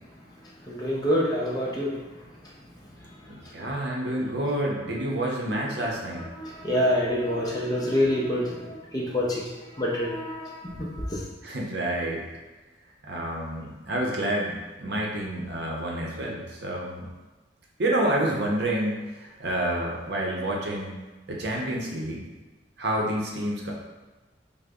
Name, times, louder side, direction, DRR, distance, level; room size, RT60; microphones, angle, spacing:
voice 1, 0.7-2.0 4.2-4.3 5.5-5.6 6.3-9.5 9.8-11.2, equal, 20° left, -4 dB, 0.5 m, -27 dB
voice 2, 3.3-6.2 11.4-12.2 13.0-17.1 17.8-21.0 21.3-22.2 22.8-23.7, right 1 dB, 60° right, -2 dB, 0.6 m, -28 dB
3.7 x 2.0 x 3.5 m, 1.2 s
head